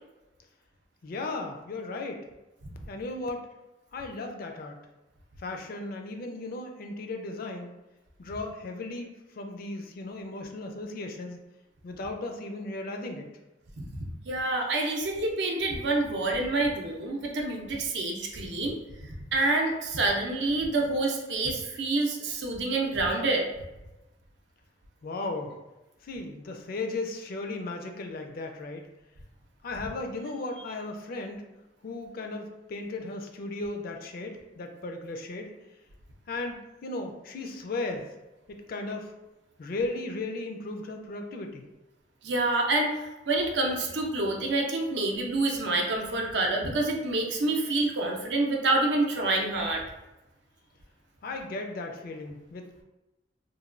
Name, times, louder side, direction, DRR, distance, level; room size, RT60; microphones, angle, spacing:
voice 1, 1.0-2.2 2.9-3.5 3.9-4.8 5.4-7.7 8.2-11.4 11.8-13.3 25.0-25.6 26.0-28.8 29.6-31.4 31.8-35.5 36.3-38.1 38.5-39.1 39.6-41.7 51.2-52.8, left 2 dB, 55° left, 4 dB, 0.4 m, -36 dB
voice 2, 13.8-18.8 19.3-23.4 42.2-43.0 43.3-49.8, right 2 dB, 70° right, 1 dB, 0.5 m, -27 dB
3.0 x 2.2 x 2.4 m, 1.0 s
head